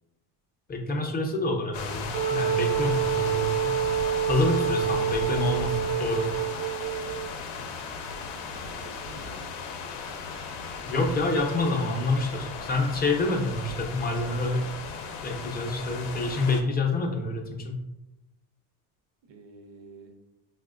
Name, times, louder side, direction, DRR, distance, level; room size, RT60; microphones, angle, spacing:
voice 1, 0.7-3.8 4.3-6.3 10.9-14.6 15.2-17.8, left 2 dB, 20° left, 2 dB, 0.4 m, -27 dB
sound 1, 1.7-16.6, left 4 dB, 85° left, 0.6 m, -36 dB
Wind instrument woodwind instrument, 2.1-7.3, right 9 dB, 35° right, 0.4 m, -27 dB
voice 2, 8.1-9.7 19.3-20.1, right 3 dB, 80° right, 4 dB, 0.7 m, -49 dB
4.9 x 2.1 x 2.4 m, 0.97 s
cardioid pair, 115°, 44 cm